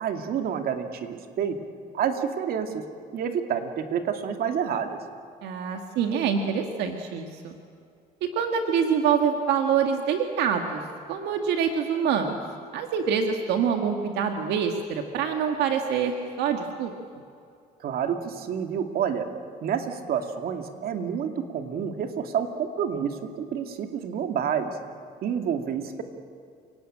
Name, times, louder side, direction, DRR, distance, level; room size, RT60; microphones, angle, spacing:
voice 1, 0.0-1.6 1.9-2.8 3.1-5.0 17.8-19.3 19.6-24.8 25.2-26.0, right 8 dB, 65° right, 6 dB, 2.4 m, -29 dB
voice 2, 5.4-7.6 8.2-10.8 11.1-12.4 12.7-16.9, right 7 dB, 85° right, 4 dB, 1.8 m, -25 dB
29.5 x 18.5 x 8.9 m, 2.3 s
cardioid pair, 110°, 17 cm